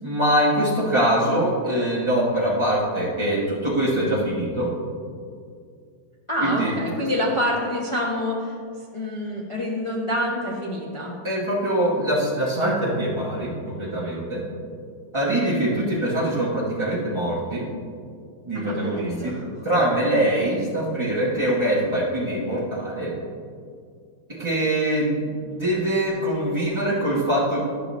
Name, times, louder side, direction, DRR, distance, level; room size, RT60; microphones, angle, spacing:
voice 1, 0.0-4.7 6.4-6.7 11.2-14.4 15.1-17.7 18.5-19.4 19.6-23.1 24.3-27.6, right 1 dB, 25° right, -7 dB, 0.6 m, -23 dB
voice 2, 6.3-11.1 18.5-19.5, left 1 dB, 40° left, -4 dB, 0.4 m, -27 dB
11.5 x 6.7 x 3.1 m, 2.2 s
omnidirectional pair, 2.2 m